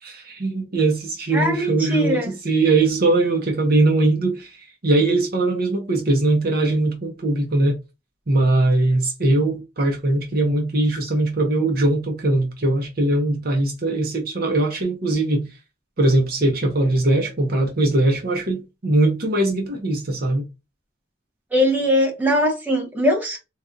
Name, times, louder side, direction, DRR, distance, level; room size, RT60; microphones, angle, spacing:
voice 1, 0.0-7.8 8.3-15.5 16.0-20.4, right 2 dB, 50° right, 0.7 m, -21 dB
voice 2, 1.3-2.3 21.5-23.4, equal, 10° right, 1.0 m, -20 dB
4.2 x 2.3 x 2.4 m
head